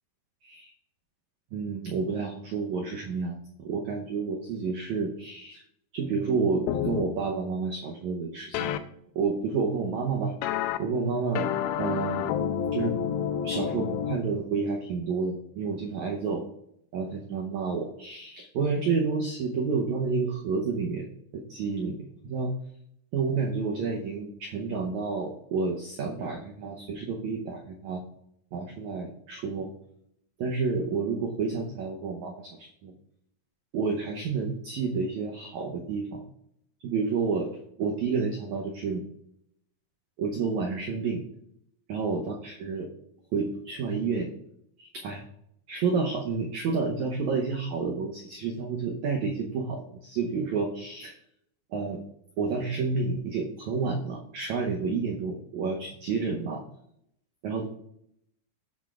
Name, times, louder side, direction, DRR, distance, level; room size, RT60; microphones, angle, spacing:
voice 1, 1.5-5.6 5.9-8.7 9.1-10.3 10.8-12.3 12.7-13.0 13.4-16.4 16.9-21.1 21.3-22.5 23.1-28.0 28.5-29.7 30.4-32.9 33.7-36.2 36.8-39.0 40.2-41.2 41.9-42.9 43.3-44.3 44.8-45.2 45.7-51.1 51.7-52.0 52.4-56.6 57.4-57.7, right 4 dB, 80° right, 1 dB, 1.6 m, -30 dB
sound 1, 6.7-7.0 8.5-8.8 10.4-10.8 11.4-14.2, left 9 dB, 80° left, 2.3 m, -29 dB
17.5 x 6.0 x 2.4 m, 0.74 s
omnidirectional pair, 4.6 m